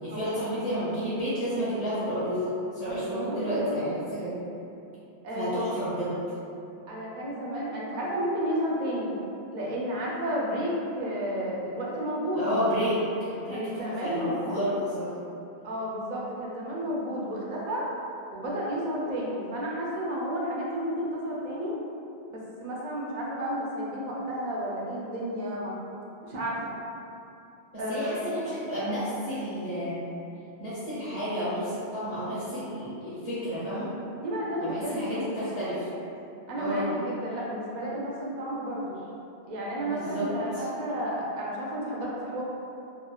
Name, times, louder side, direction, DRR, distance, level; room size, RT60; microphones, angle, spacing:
voice 1, 0.0-4.4 5.3-6.2 12.4-13.0 13.3-15.3 27.7-30.1 30.6-33.9 34.6-35.9 36.6-36.9 39.9-40.3, equal, 35° left, -12 dB, 0.9 m, -31 dB
voice 2, 2.8-3.9 5.2-5.7 6.9-9.1 9.5-12.5 13.5-14.6 15.6-17.8 18.3-21.7 22.3-25.7 26.2-26.8 27.8-28.3 34.2-35.4 36.5-39.0 39.5-42.4, equal, 55° right, -5 dB, 0.5 m, -32 dB
3.1 x 2.1 x 2.3 m, 2.7 s
omnidirectional pair, 1.1 m